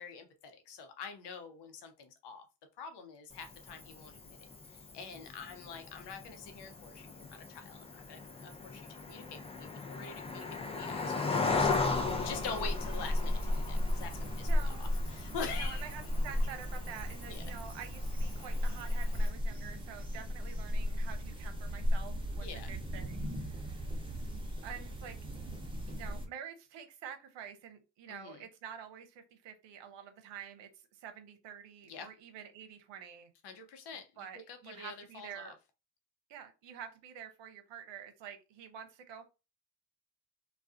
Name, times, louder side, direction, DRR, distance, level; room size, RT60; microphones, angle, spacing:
voice 1, 0.0-2.5 2.8-4.4 4.7-15.9 17.3-17.5 22.4-22.7 28.1-28.4 31.8-32.1 33.4-35.5, left 5 dB, 60° left, 0.8 m, -46 dB
Cricket, 3.3-19.3, left 4 dB, 15° left, 0.5 m, -38 dB
sound 1, 11.6-26.3, left 1 dB, 10° right, 0.8 m, -35 dB
voice 2, 14.4-15.0 15.5-24.3 24.6-25.2 25.9-33.3 34.2-35.5 36.3-39.2, right 8 dB, 65° right, 0.8 m, -48 dB
2.3 x 2.3 x 2.5 m
hypercardioid pair, 50°, 47 cm